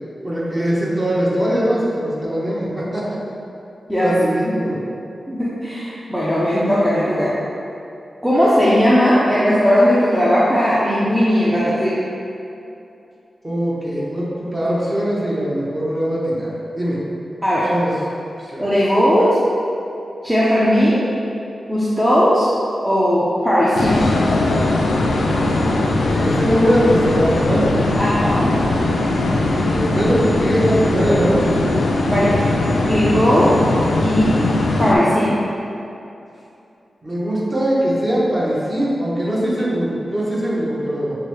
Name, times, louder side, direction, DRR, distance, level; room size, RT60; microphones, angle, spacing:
voice 1, 0.2-3.1 4.0-4.8 13.4-17.0 17.7-17.9 18.4-18.7 25.9-27.7 29.6-31.6 37.0-41.2, equal, 25° right, -7 dB, 1.2 m, -21 dB
voice 2, 5.3-7.3 8.2-12.0 17.4-17.7 18.6-19.3 20.2-21.0 21.7-22.5 22.8-24.1 28.0-28.5 32.1-32.5 32.9-33.5 34.0-34.4 34.8-35.4, equal, 10° right, -9 dB, 0.6 m, -17 dB
sound 1, 23.8-35.0, left 2 dB, 85° left, 0.4 m, -19 dB
6.4 x 2.3 x 3.1 m, 2.7 s
cardioid pair, 70°, 0 cm